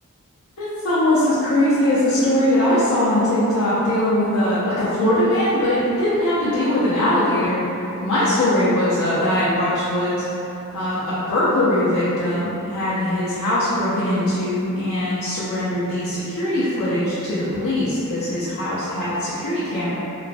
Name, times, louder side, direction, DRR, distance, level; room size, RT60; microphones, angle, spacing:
voice 1, 0.6-7.6 8.0-10.2 10.7-19.9, left 1 dB, 80° left, -11 dB, 0.5 m, -21 dB
3.1 x 2.1 x 2.5 m, 2.9 s
head